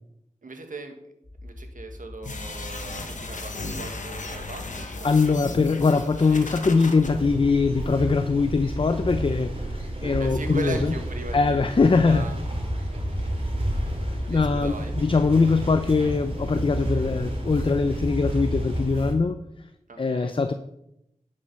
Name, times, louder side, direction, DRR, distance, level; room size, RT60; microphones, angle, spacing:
voice 1, 0.4-0.9 1.4-5.4 6.3-7.2 10.0-12.4 12.9-13.4 14.3-14.9 19.9-20.3, right 3 dB, 75° right, 5 dB, 1.5 m, -39 dB
sound 1, 1.2-16.6, left 1 dB, 5° left, 3.9 m, -42 dB
sound 2, 2.2-7.1, left 3 dB, 65° left, 1.3 m, -36 dB
voice 2, 5.0-10.9 11.3-12.3 14.3-19.4 20.0-20.5, left 4 dB, 40° left, 10 dB, 0.5 m, -22 dB
sound 3, 7.0-19.1, right 1 dB, 45° right, 2.5 m, -30 dB
10.0 x 5.3 x 5.5 m, 0.80 s
cardioid pair, 50°, 14 cm